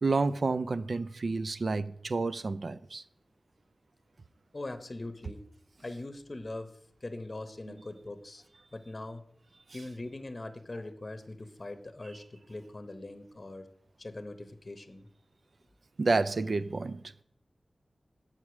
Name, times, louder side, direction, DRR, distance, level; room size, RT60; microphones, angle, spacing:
voice 1, 0.0-3.0 7.7-7.8 16.0-17.0, right 3 dB, 65° right, 0.3 m, -30 dB
voice 2, 4.5-5.4 5.8-8.4 8.7-9.2 9.7-13.7 14.0-15.1, left 2 dB, 40° left, 0.8 m, -41 dB
7.3 x 4.8 x 6.0 m
wide cardioid pair, 80°, 0 cm